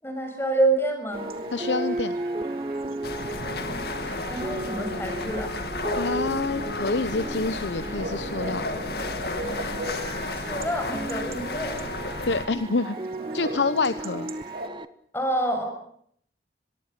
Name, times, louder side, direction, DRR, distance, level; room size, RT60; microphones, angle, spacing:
voice 1, 0.0-1.2 4.3-5.5 10.3-11.8 15.1-15.6, right 2 dB, 15° left, 5 dB, 6.6 m, -27 dB
sound 1, 1.1-14.9, right 2 dB, 25° right, 0.9 m, -35 dB
Chatter / Bark / Livestock farm animals working animals, 1.1-14.7, right 2 dB, 55° right, 2.9 m, -41 dB
voice 2, 1.5-2.1 6.0-8.6 12.3-13.0 13.3-14.3, left 3 dB, 85° left, 12 dB, 0.9 m, -27 dB
sound 2, 3.0-12.5, left 2 dB, 60° left, 2.4 m, -33 dB
24.0 x 23.5 x 6.9 m, 0.66 s
head